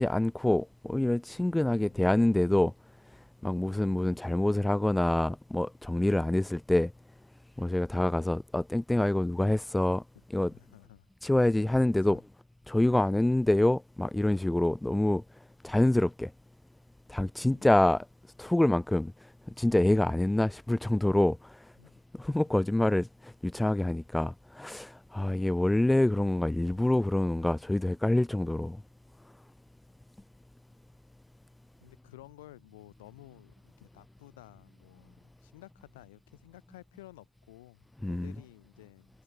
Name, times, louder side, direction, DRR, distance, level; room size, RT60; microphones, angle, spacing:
voice 1, 0.0-2.7 3.4-6.9 7.6-10.0 10.3-10.5 11.2-12.2 12.7-15.2 15.6-16.3 17.1-18.0 18.4-19.1 19.6-21.6 22.2-28.8 38.0-38.3, left 1 dB, 10° left, 2.8 m, -26 dB
voice 2, 10.5-11.1 12.0-12.2 17.4-17.8 21.8-22.0 22.3-22.5 31.8-39.2, left 17 dB, 80° left, 7.6 m, -54 dB
figure-of-eight pair, 40°, 0 cm